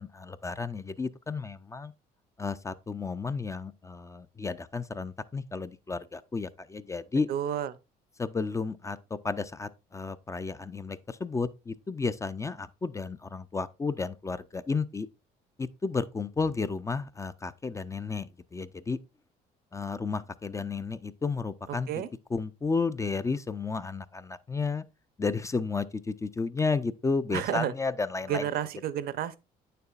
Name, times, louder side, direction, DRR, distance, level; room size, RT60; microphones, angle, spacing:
voice 1, 0.0-1.9 2.4-7.3 8.2-9.0 9.2-15.1 15.6-19.0 19.7-21.9 22.3-24.8 25.2-28.4, left 4 dB, 20° left, 0.4 m, -32 dB
voice 2, 7.3-7.7 21.9-22.1 27.3-27.7 28.3-29.4, right 10 dB, 65° right, 0.6 m, -30 dB
8.8 x 6.7 x 2.4 m
cardioid pair, 110°, 17 cm